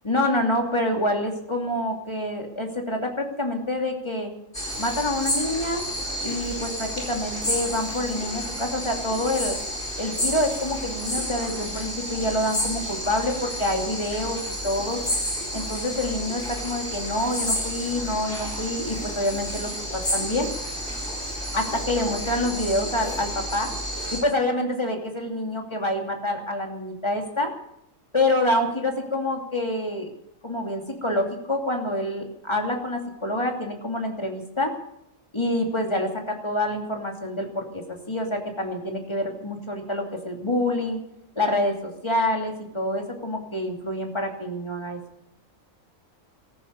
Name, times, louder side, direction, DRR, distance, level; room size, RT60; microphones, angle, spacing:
voice 1, 0.0-4.3 4.8-5.8 6.2-9.6 10.0-15.0 15.5-20.5 21.5-23.7 24.1-27.5 28.1-30.1 30.4-34.8 35.3-41.0 41.4-45.0, left 1 dB, 20° left, 2 dB, 2.8 m, -27 dB
sound 1, 4.5-24.2, equal, 40° left, 5.0 m, -31 dB
17.5 x 14.5 x 5.3 m, 0.82 s
omnidirectional pair, 1.4 m